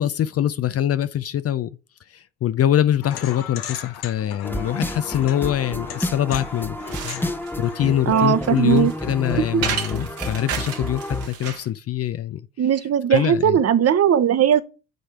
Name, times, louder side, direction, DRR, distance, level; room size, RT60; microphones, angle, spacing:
voice 1, 0.0-1.7 2.1-6.8 7.0-7.3 7.6-12.4 13.1-13.6, left 11 dB, 40° left, 0.5 m, -23 dB
sound 1, 3.0-8.6, left 9 dB, 70° left, 1.0 m, -38 dB
sound 2, 4.4-11.3, left 1 dB, 5° left, 0.8 m, -30 dB
sound 3, 6.5-11.7, right 7 dB, 75° right, 1.6 m, -32 dB
voice 2, 8.1-8.9 9.4-9.6 12.6-14.6, right 9 dB, 40° right, 0.9 m, -18 dB
9.1 x 3.2 x 5.9 m
hypercardioid pair, 50°, 38 cm